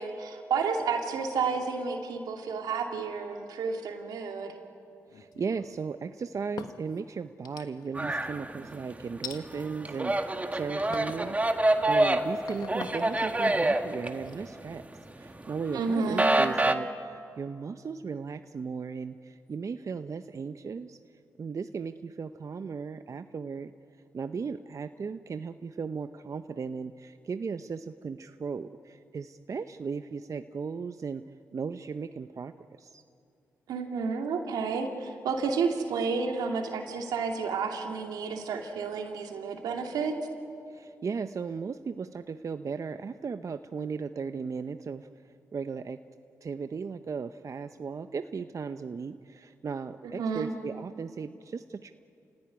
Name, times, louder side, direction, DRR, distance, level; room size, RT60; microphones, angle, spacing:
voice 1, 0.0-4.6 15.7-16.3 33.7-40.2 50.0-50.5, right 5 dB, 85° right, 3 dB, 2.5 m, -31 dB
sound 1, 5.1-5.8 6.3-7.0 7.4-8.1 9.2-9.4 10.1-10.5 10.9-11.3 11.7-15.4, left 7 dB, 80° left, 1.4 m, -45 dB
voice 2, 5.1-11.4 11.9-14.8 15.2-21.0 21.4-23.7 24.1-31.2 31.5-32.5 32.8-33.0 40.7-45.1 45.5-46.0 46.4-51.9, right 5 dB, 55° right, 9 dB, 0.8 m, -36 dB
sound 2, 8.0-9.0 9.4-14.8 15.2-16.7, right 2 dB, 20° right, 1.8 m, -26 dB
29.0 x 17.0 x 9.9 m, 2.5 s
supercardioid pair, 45°, 7 cm